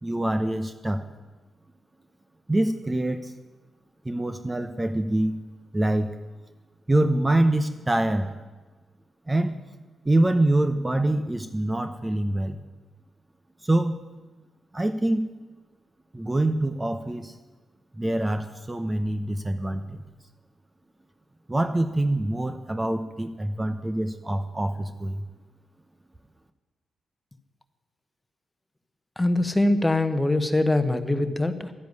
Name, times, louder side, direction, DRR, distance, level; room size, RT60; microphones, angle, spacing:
voice 1, 0.0-1.0 2.5-3.3 4.0-5.3 5.7-6.1 6.9-8.3 9.3-9.5 10.0-12.6 13.6-13.9 14.7-15.2 16.1-17.3 18.0-20.0 21.5-25.2, right 1 dB, 20° right, 9 dB, 0.9 m, -25 dB
voice 2, 29.2-31.7, left 1 dB, 15° left, 10 dB, 1.2 m, -23 dB
12.0 x 10.0 x 9.6 m, 1.3 s
cardioid pair, 75°, 0 cm